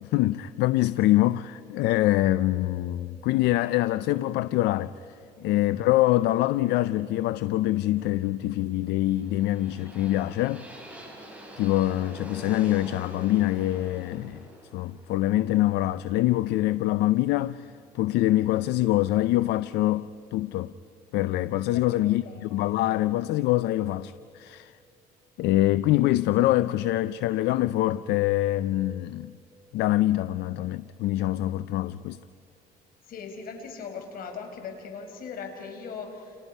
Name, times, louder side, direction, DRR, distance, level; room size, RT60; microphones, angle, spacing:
voice 1, 0.0-10.7 11.6-14.5 14.7-20.7 21.1-24.7 25.4-29.3 29.7-32.2, left 15 dB, 85° left, 0.5 m, -25 dB
sound 1, 8.9-16.8, equal, 10° right, 5.7 m, -46 dB
voice 2, 21.7-22.5 33.1-36.4, left 5 dB, 60° left, 4.7 m, -40 dB
30.0 x 29.5 x 5.5 m
cardioid pair, 110°, 17 cm